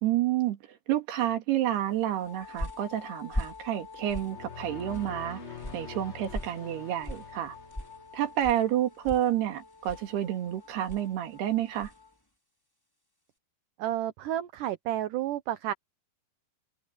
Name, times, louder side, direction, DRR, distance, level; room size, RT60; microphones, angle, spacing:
voice 1, 0.0-5.4 5.7-7.6 8.1-11.9, right 12 dB, 90° right, 4.1 m, -29 dB
sound 1, 2.0-12.1, equal, 5° left, 4.4 m, -42 dB
Wind instrument woodwind instrument, 2.2-12.2, left 5 dB, 50° left, 6.3 m, -50 dB
sound 2, 4.0-8.3, left 4 dB, 80° left, 0.6 m, -45 dB
voice 2, 13.8-15.7, right 12 dB, 70° right, 2.1 m, -31 dB
omnidirectional pair, 4.5 m